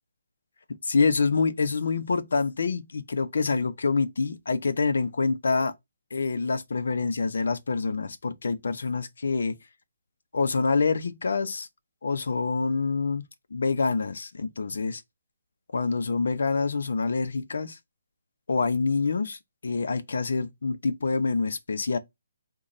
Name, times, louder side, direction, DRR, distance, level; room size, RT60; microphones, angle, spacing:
voice 1, 0.8-5.7 6.1-9.6 10.3-11.7 12.0-13.2 13.5-15.0 15.7-17.8 18.5-22.0, left 4 dB, 70° left, 0.6 m, -26 dB
3.9 x 2.3 x 3.1 m
hypercardioid pair, 175°, 0 cm